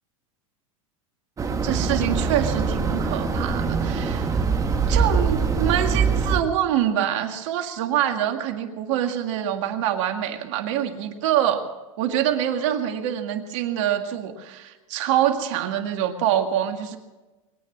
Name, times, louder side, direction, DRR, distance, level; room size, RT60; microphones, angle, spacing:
sound 1, 1.4-6.4, right 5 dB, 20° right, 1.6 m, -23 dB
voice 1, 1.6-4.4 4.9-11.7 12.0-17.0, right 10 dB, 60° right, 6 dB, 1.9 m, -25 dB
21.5 x 9.2 x 7.3 m, 1.2 s
hypercardioid pair, 110°, 17 cm